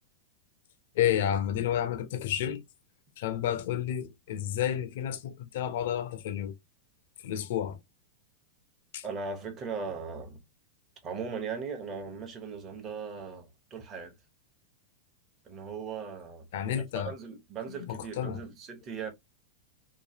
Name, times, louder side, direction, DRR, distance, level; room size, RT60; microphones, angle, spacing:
voice 1, 1.0-2.6 3.2-6.5 7.2-7.8 8.9-9.0 16.5-17.1 17.7-18.4, left 10 dB, 65° left, 0.6 m, -30 dB
voice 2, 9.0-10.4 11.0-14.1 15.4-16.5 16.7-19.1, right 5 dB, 30° right, 0.9 m, -38 dB
3.1 x 2.3 x 2.7 m
hypercardioid pair, 130°, 0 cm